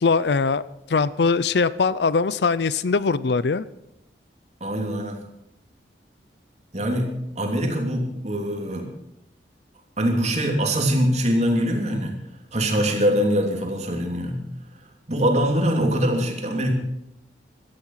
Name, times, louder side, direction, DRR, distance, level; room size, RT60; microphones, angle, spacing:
voice 1, 0.0-0.6 0.9-3.6, left 4 dB, 65° left, 18 dB, 0.5 m, -21 dB
voice 2, 4.6-5.2 6.7-8.9 10.0-12.2 12.5-14.4 15.1-16.7, equal, 40° right, 2 dB, 3.1 m, -23 dB
16.5 x 13.0 x 5.8 m, 0.85 s
head